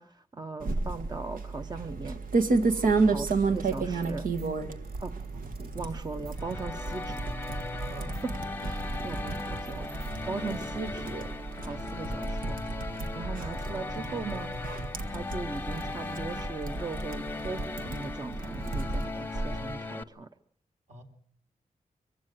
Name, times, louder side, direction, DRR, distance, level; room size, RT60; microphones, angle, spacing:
voice 1, 0.0-2.2 3.0-4.3 5.0-5.1 5.7-7.2 7.5-7.9 8.2-8.3 8.6-11.3 11.6-12.6 13.1-14.5 15.0-20.3, right 4 dB, 30° right, 8 dB, 0.8 m, -39 dB
sound 1, 0.6-19.7, right 3 dB, 85° right, 1.6 m, -32 dB
sound 2, 3.2-10.7, right 3 dB, 45° right, 7.9 m, -57 dB
sound 3, 6.4-20.0, left 3 dB, 15° left, 0.8 m, -38 dB
voice 2, 7.9-8.4 10.2-10.4 20.9-21.0, right 2 dB, 60° right, 4 dB, 3.7 m, -47 dB
24.0 x 15.5 x 7.9 m, 0.67 s
wide cardioid pair, 125°, 14 cm